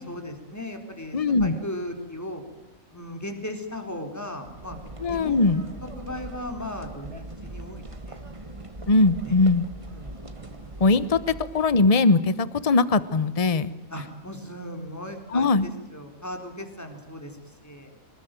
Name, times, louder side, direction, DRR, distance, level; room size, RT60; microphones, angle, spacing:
voice 1, 0.0-2.4 2.9-4.8 5.1-8.2 9.2-9.3 9.9-10.9 13.9-17.4 17.6-17.9, left 1 dB, 10° left, 5 dB, 4.0 m, -37 dB
voice 2, 1.1-1.6 5.0-5.6 8.9-9.6 10.8-13.7 15.3-15.7, left 3 dB, 30° left, 15 dB, 1.1 m, -21 dB
sound 1, 4.4-11.8, right 1 dB, 25° right, 1.6 m, -41 dB
25.0 x 20.5 x 9.2 m, 0.90 s
omnidirectional pair, 1.4 m